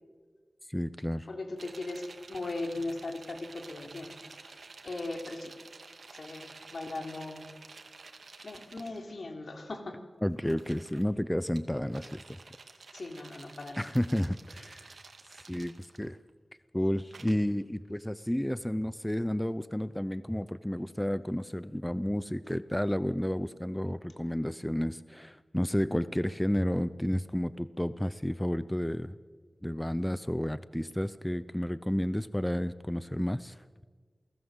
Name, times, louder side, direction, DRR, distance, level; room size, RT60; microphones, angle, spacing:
voice 1, 0.7-1.3 10.2-12.2 13.8-15.0 15.4-16.2 16.7-29.1 29.6-33.6, equal, 10° left, 15 dB, 0.6 m, -31 dB
voice 2, 1.3-2.0 2.3-4.1 4.5-5.5 6.1-7.5 8.4-10.0 12.9-13.9, left 2 dB, 70° left, 4 dB, 3.6 m, -38 dB
sound 1, 1.6-9.0 10.3-11.1 11.6-16.3 17.1-17.3, right 4 dB, 80° right, 2.3 m, -51 dB
28.5 x 18.5 x 7.9 m, 1.5 s
wide cardioid pair, 85°, 0 cm